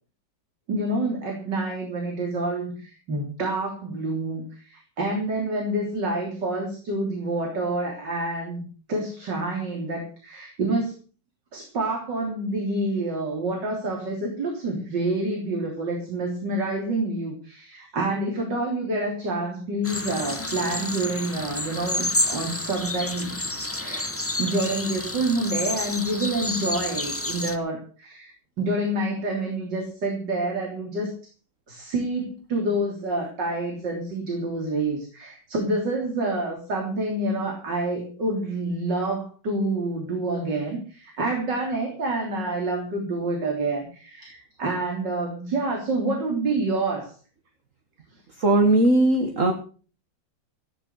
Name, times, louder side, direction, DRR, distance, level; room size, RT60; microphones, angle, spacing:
voice 1, 0.7-8.6 8.9-10.9 11.5-23.4 23.8-24.1 24.4-31.1 31.7-47.1, right 2 dB, 65° right, 1 dB, 4.0 m, -28 dB
sound 1, 19.8-27.6, left 1 dB, 10° left, 0.7 m, -30 dB
voice 2, 48.4-49.5, right 2 dB, 45° right, 5 dB, 2.0 m, -18 dB
16.0 x 10.0 x 6.6 m, 0.39 s
omnidirectional pair, 2.1 m